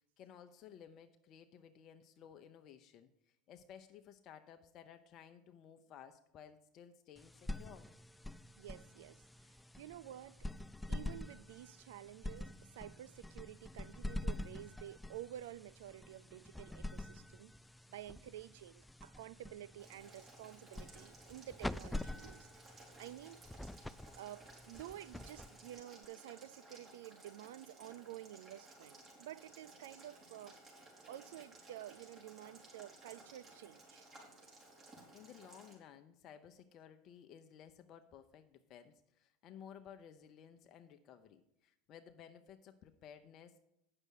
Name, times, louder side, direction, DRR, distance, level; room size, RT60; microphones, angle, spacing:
voice 1, 0.2-7.9 35.1-43.6, left 8 dB, 50° left, 0.7 m, -56 dB
sound 1, 7.2-26.0, left 1 dB, 5° left, 0.3 m, -46 dB
voice 2, 8.6-9.2 9.8-10.4 10.9-17.5 17.9-22.5 23.0-23.4 24.2-30.6 31.1-34.0, right 13 dB, 75° right, 0.3 m, -51 dB
Boiling, 19.8-35.7, right 2 dB, 35° right, 4.2 m, -58 dB
8.8 x 6.6 x 6.4 m
hypercardioid pair, 85°, 0 cm